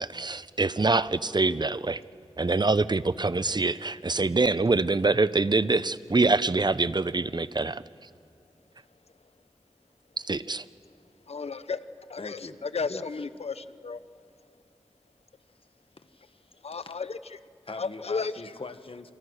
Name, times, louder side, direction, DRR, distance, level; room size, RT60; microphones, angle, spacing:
voice 1, 0.0-2.0 2.4-7.8 10.2-10.6, right 3 dB, 45° right, 16 dB, 0.7 m, -25 dB
voice 2, 11.3-11.8 12.1-14.0 16.6-17.4 17.8-18.5, left 4 dB, 80° left, 14 dB, 0.7 m, -34 dB
voice 3, 12.2-12.6 12.9-13.2 16.0-16.9 17.7-19.1, left 3 dB, 60° left, 9 dB, 1.5 m, -42 dB
28.0 x 26.0 x 6.4 m, 2.3 s
cardioid pair, 40°, 11 cm